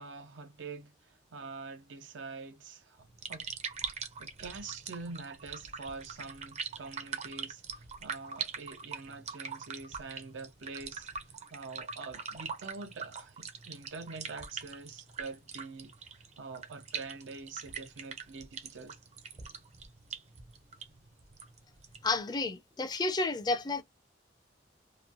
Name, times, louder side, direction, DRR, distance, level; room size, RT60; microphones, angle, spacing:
voice 1, 0.0-3.5 4.2-11.1 11.5-19.0, right 4 dB, 90° right, 0.6 m, -45 dB
sound 1, 3.0-22.2, right 6 dB, 40° right, 0.5 m, -43 dB
voice 2, 22.0-23.8, left 3 dB, 20° left, 0.4 m, -31 dB
2.9 x 2.1 x 2.4 m
head